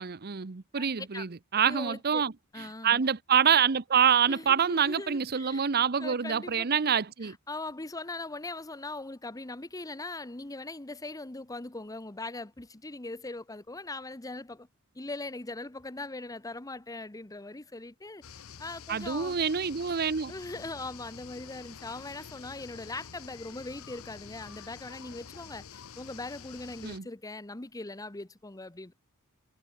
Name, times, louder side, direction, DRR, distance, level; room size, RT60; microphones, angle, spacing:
voice 1, 0.0-2.3 2.8-7.4 18.9-20.3 26.8-27.0, right 7 dB, 45° right, 0.8 m, -26 dB
voice 2, 0.7-1.3 1.7-2.3 2.5-3.0 4.3-5.7 6.0-6.9 7.2-14.7 14.9-18.2 18.6-19.4 20.3-28.9, left 2 dB, 15° left, 0.9 m, -40 dB
sound 1, 18.2-27.0, left 7 dB, 70° left, 0.8 m, -48 dB
head